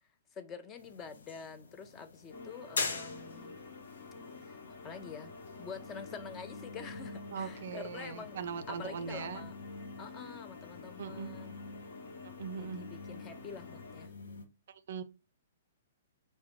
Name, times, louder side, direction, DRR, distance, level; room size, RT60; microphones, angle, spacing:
voice 1, 0.3-3.6 4.4-8.4 8.7-9.6 10.0-11.6 12.6-14.1, left 5 dB, 25° left, 0.5 m, -47 dB
sound 1, 0.8-14.5, left 4 dB, 85° left, 0.6 m, -45 dB
sound 2, 2.3-14.1, left 4 dB, 65° left, 1.1 m, -49 dB
voice 2, 7.3-9.5 11.0-11.4 12.4-12.9 14.9-15.0, right 6 dB, 65° right, 0.4 m, -40 dB
4.7 x 2.1 x 3.0 m
hypercardioid pair, 135°, 0 cm